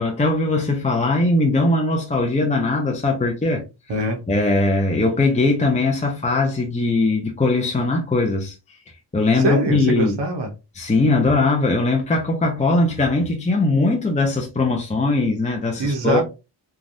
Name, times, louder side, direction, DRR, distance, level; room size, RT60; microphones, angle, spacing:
voice 1, 0.0-3.6 4.3-8.6 9.1-10.2 10.7-16.2, left 2 dB, 15° left, 0.5 m, -20 dB
voice 2, 3.9-4.2 9.3-10.5 15.8-16.2, right 2 dB, 60° right, 0.9 m, -23 dB
3.4 x 2.3 x 2.5 m
wide cardioid pair, 85°, 48 cm